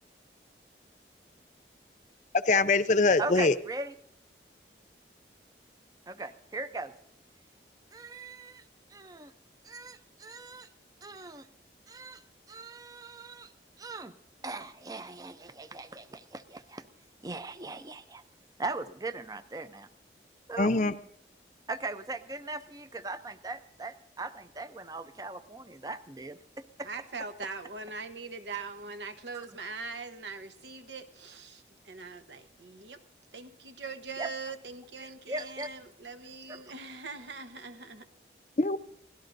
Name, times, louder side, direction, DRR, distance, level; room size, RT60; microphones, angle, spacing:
voice 1, 2.4-3.5 20.6-20.9 38.6-38.8, left 3 dB, 40° left, 12 dB, 0.6 m, -23 dB
voice 2, 3.2-3.9 6.1-6.9 7.9-8.6 8.9-9.3 9.6-10.7 11.0-11.5 11.9-12.2 12.5-13.5 13.8-14.2 14.4-16.8 17.2-18.2 18.6-19.9 20.5-20.8 21.7-26.9 29.3-29.5 34.2-34.3 35.3-35.7 36.5-36.6, right 3 dB, 20° right, 11 dB, 0.5 m, -39 dB
voice 3, 26.8-33.0 33.3-38.1, right 4 dB, 80° right, 8 dB, 1.0 m, -42 dB
24.0 x 17.5 x 2.6 m, 0.77 s
head